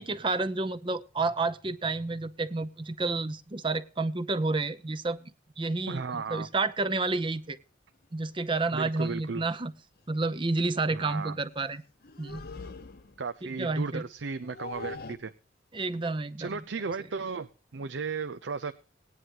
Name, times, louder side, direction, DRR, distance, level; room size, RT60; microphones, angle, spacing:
voice 1, 0.0-5.2 5.6-7.6 8.1-9.7 10.1-11.8 12.2-12.4 13.4-14.0 15.7-16.6, right 3 dB, 25° right, 14 dB, 0.7 m, -30 dB
voice 2, 5.9-6.5 8.7-9.4 10.9-11.4 13.2-15.3 16.4-18.7, right 4 dB, 85° right, 9 dB, 0.6 m, -35 dB
sound 1, 7.1-7.3 8.5-8.6 9.0-9.1 9.5-9.7 12.0-13.3 14.2-15.2, left 4 dB, 55° left, 0.8 m, -43 dB
19.0 x 9.7 x 2.9 m, 0.36 s
head